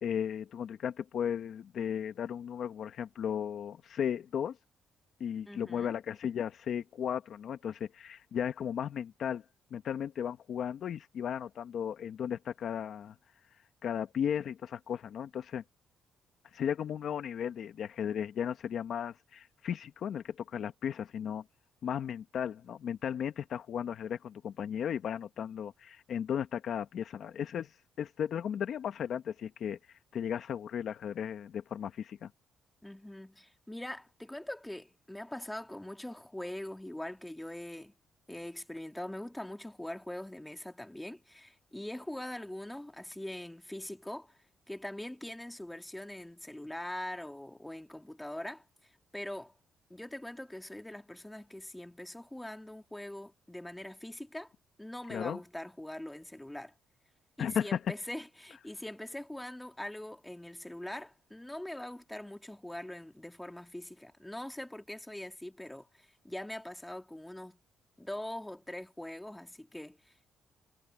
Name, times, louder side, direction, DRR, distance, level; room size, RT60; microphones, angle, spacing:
voice 1, 0.0-4.6 5.2-9.4 9.7-13.1 13.8-15.6 16.5-21.4 21.8-27.7 28.0-29.8 30.1-32.3 55.1-55.4 57.4-57.8, left 8 dB, 65° left, 1.5 m, -35 dB
voice 2, 5.5-5.9 32.8-37.9 38.3-44.3 44.7-48.6 49.1-49.5 49.9-54.5 54.8-56.7 57.4-67.6 68.0-70.1, left 1 dB, 5° left, 2.3 m, -42 dB
cardioid pair, 90°, 0 cm